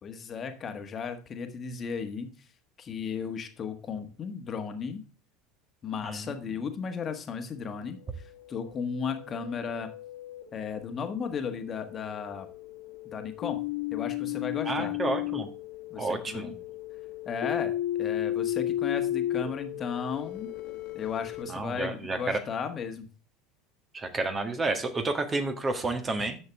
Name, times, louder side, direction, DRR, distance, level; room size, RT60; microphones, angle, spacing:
voice 1, 0.0-2.5 2.8-5.0 5.8-9.9 10.5-12.5 13.1-13.6 13.9-15.0 15.9-16.5 17.2-20.5 20.9-23.1, left 6 dB, 35° left, 7 dB, 1.5 m, -35 dB
voice 2, 6.0-6.3 14.6-15.5 16.0-16.5 21.5-22.4 23.9-26.4, right 3 dB, 25° right, 7 dB, 1.7 m, -30 dB
sound 1, 8.2-21.4, left 13 dB, 60° left, 1.5 m, -34 dB
10.5 x 7.1 x 3.5 m, 0.37 s
figure-of-eight pair, 70°, 0 cm